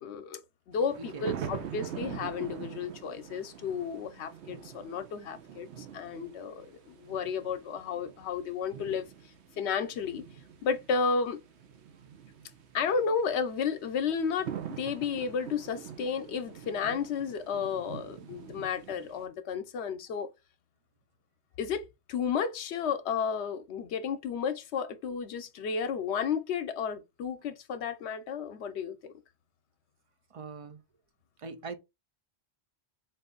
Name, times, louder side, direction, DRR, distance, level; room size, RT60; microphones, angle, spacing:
voice 1, 0.0-0.4 0.7-9.1 9.6-10.2 10.6-11.4 12.7-14.5 14.8-20.3 21.6-29.1, left 6 dB, 85° left, 0.9 m, -32 dB
sound 1, 0.7-19.2, right 8 dB, 85° right, 1.0 m, -44 dB
voice 2, 1.0-1.5 30.3-30.8 31.4-31.8, right 4 dB, 45° right, 0.4 m, -42 dB
4.0 x 2.6 x 3.7 m
omnidirectional pair, 1.1 m